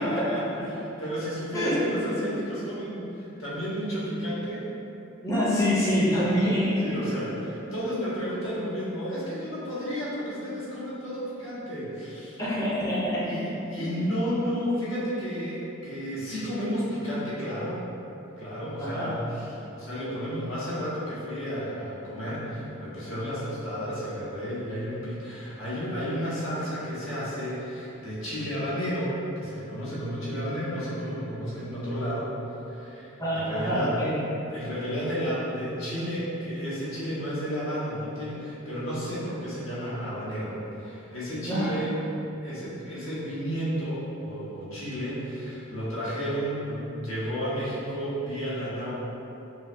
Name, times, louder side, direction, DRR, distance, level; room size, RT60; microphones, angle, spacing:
voice 1, 0.0-4.7 6.8-12.4 13.2-17.8 18.4-32.3 32.6-42.0 42.4-48.9, equal, 75° left, -9 dB, 1.1 m, -32 dB
voice 2, 5.2-6.9 12.4-13.3 13.7-13.9 18.8-19.1 33.2-34.2 41.5-41.7, equal, 15° left, -9 dB, 0.5 m, -25 dB
5.5 x 2.1 x 2.5 m, 2.9 s
head